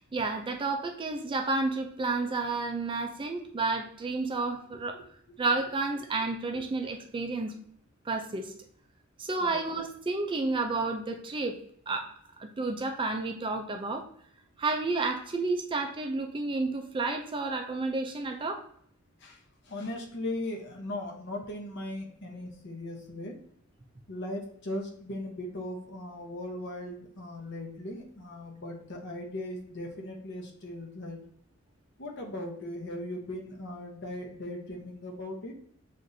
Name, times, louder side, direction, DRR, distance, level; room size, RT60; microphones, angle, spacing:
voice 1, 0.1-5.0 5.4-7.5 8.1-8.5 9.2-11.6 11.9-12.1 12.4-14.0 14.6-18.6, right 3 dB, 20° right, 4 dB, 0.4 m, -31 dB
voice 2, 19.7-23.4 24.1-31.2 32.0-35.5, left 1 dB, 55° left, 1 dB, 0.9 m, -38 dB
7.5 x 2.5 x 2.6 m, 0.63 s
head